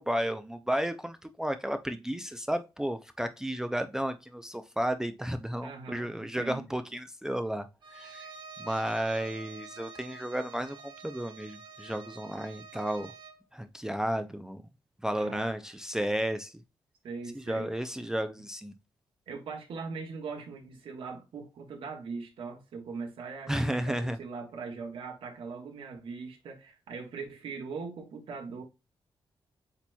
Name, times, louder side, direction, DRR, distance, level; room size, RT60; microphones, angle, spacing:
voice 1, 0.0-7.7 7.9-8.3 8.6-10.8 11.0-13.1 13.5-14.6 15.0-16.5 17.3-18.7 23.5-24.2, right 1 dB, 5° right, 0.4 m, -33 dB
voice 2, 5.6-6.7 15.1-15.5 17.0-17.7 19.3-28.6, right 4 dB, 90° right, 1.3 m, -40 dB
Bowed string instrument, 7.8-13.4, right 4 dB, 60° right, 1.0 m, -48 dB
8.1 x 3.0 x 2.2 m
wide cardioid pair, 165°, 9 cm